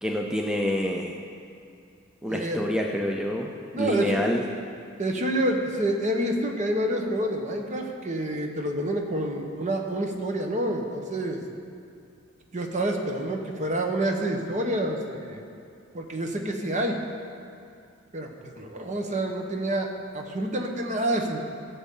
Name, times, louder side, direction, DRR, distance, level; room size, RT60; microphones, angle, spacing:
voice 1, 0.0-1.1 2.2-4.4, equal, 5° right, 0 dB, 0.5 m, -27 dB
voice 2, 2.3-2.6 3.7-4.2 5.0-11.4 12.5-15.4 15.9-17.0 18.1-21.4, right 1 dB, 40° right, 2 dB, 1.1 m, -28 dB
16.0 x 7.1 x 3.8 m, 2.4 s
head